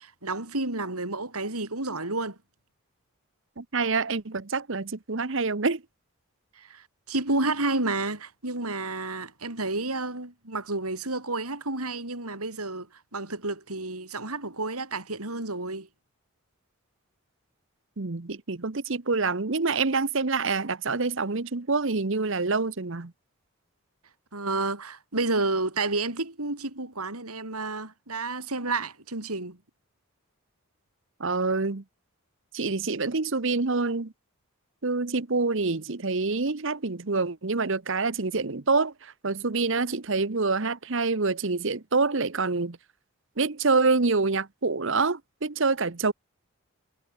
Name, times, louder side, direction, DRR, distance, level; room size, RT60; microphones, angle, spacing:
voice 1, 0.0-2.4 6.6-12.9 13.1-15.9 24.3-29.6, right 2 dB, 85° right, 5.5 m, -30 dB
voice 2, 3.6-5.8 18.0-23.1 31.2-31.8 32.5-34.1 34.8-42.8 43.4-46.1, right 4 dB, 55° right, 1.0 m, -26 dB
head